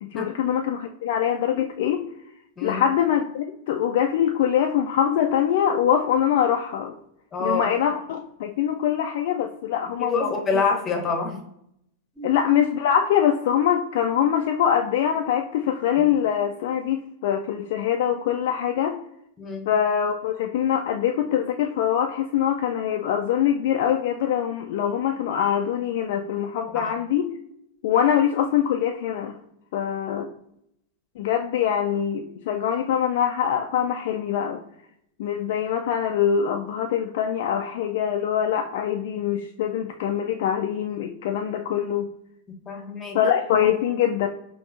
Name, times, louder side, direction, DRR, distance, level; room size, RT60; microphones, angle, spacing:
voice 1, 0.0-2.0 2.6-6.9 7.4-10.6 12.2-19.0 19.7-27.2 27.8-29.4 29.7-30.3 31.2-34.6 35.2-42.1 43.1-44.3, left 9 dB, 55° left, 3 dB, 0.3 m, -23 dB
voice 2, 7.3-7.6 10.0-11.4 12.2-12.3 16.0-16.1 19.4-19.7 26.7-26.9 42.7-43.2, left 4 dB, 20° left, 3 dB, 0.9 m, -26 dB
5.3 x 2.8 x 2.5 m, 0.75 s
figure-of-eight pair, 90°, 0 cm